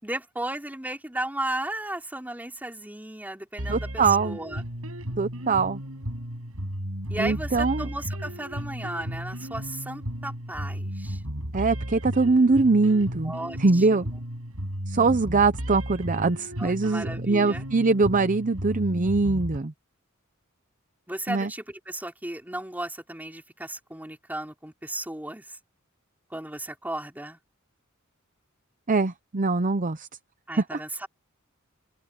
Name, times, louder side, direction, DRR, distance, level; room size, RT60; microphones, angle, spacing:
voice 1, 0.0-4.6 7.1-11.2 13.2-14.1 16.6-17.6 21.1-25.6 26.3-27.4 30.5-31.1, right 1 dB, 10° right, 4.0 m, -35 dB
sound 1, 3.6-19.6, equal, 75° right, 7.7 m, -34 dB
voice 2, 3.7-4.4 5.2-5.8 7.2-7.9 11.5-13.3 13.6-14.1 14.9-19.7 21.3-21.5 28.9-30.1 30.6-30.8, right 3 dB, 35° right, 0.7 m, -22 dB
open air
head